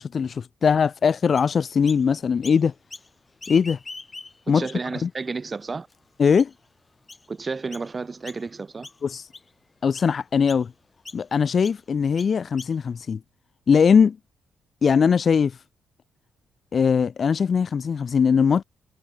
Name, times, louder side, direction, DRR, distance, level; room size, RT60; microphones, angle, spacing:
voice 1, 0.0-2.7 3.5-3.8 4.5-4.7 5.0-5.1 6.2-6.5 9.0-9.2 9.8-10.7 11.1-13.2 13.7-14.2 14.8-15.5 16.7-18.6, left 6 dB, 45° left, 0.9 m, -20 dB
Chirp tweet, 1.4-2.0 2.4-3.1 3.4-4.6 5.1-5.2 5.9-6.0 6.4-6.7 7.1-7.3 7.7-7.9 8.2-8.6 8.8-9.5 9.9-10.1 10.5-10.6 11.1-11.2 11.6-11.8 12.2-13.0, left 3 dB, 25° left, 7.6 m, -41 dB
voice 2, 4.5-5.9 7.3-8.9, right 4 dB, 30° right, 3.7 m, -31 dB
cardioid pair, 90°, 0 cm